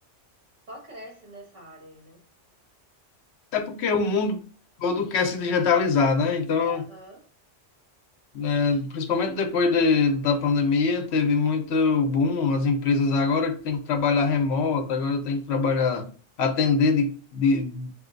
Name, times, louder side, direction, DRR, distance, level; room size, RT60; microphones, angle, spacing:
voice 1, 0.7-2.2 6.6-7.3, equal, 90° right, 2.6 m, -44 dB
voice 2, 3.5-4.4 4.8-6.8 8.3-16.1 16.4-17.9, left 4 dB, 65° left, 1.0 m, -23 dB
7.6 x 2.7 x 2.6 m
omnidirectional pair, 1.2 m